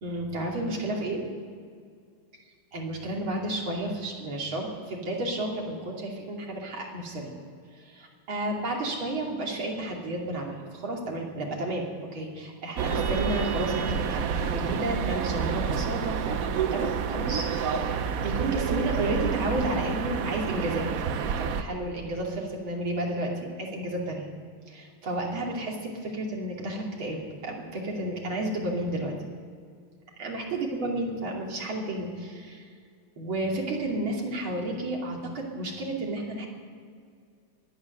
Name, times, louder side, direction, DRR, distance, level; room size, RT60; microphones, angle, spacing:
voice 1, 0.0-1.3 2.7-7.3 7.8-16.4 16.7-20.9 21.4-24.3 24.7-29.1 30.2-32.7 33.2-36.5, right 1 dB, 75° right, -1 dB, 3.5 m, -32 dB
sound 1, 12.8-21.6, right 7 dB, 60° right, 0.9 m, -29 dB
23.0 x 9.4 x 6.6 m, 2.1 s
omnidirectional pair, 2.2 m